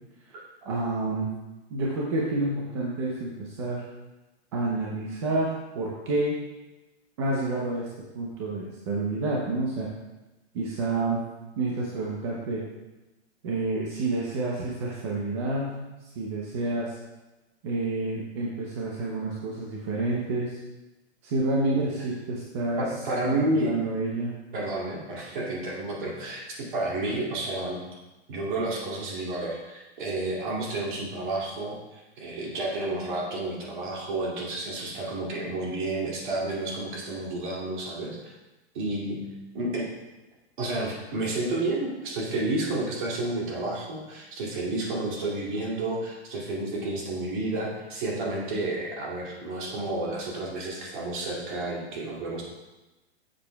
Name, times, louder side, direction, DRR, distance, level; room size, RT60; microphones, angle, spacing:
voice 1, 0.3-1.3 1.7-3.8 4.5-6.3 7.2-7.9 8.1-9.9 10.5-11.2 11.6-12.6 13.4-15.8 16.2-17.0 17.6-20.6 21.2-22.9 23.3-24.3, right 2 dB, 25° right, -3 dB, 0.7 m, -29 dB
voice 2, 22.8-23.9 24.5-27.8 28.3-38.3 38.7-39.2 39.5-39.9 40.6-52.4, right 2 dB, 45° right, -3 dB, 2.3 m, -31 dB
9.1 x 7.5 x 2.3 m, 1.1 s
hypercardioid pair, 170°, 34 cm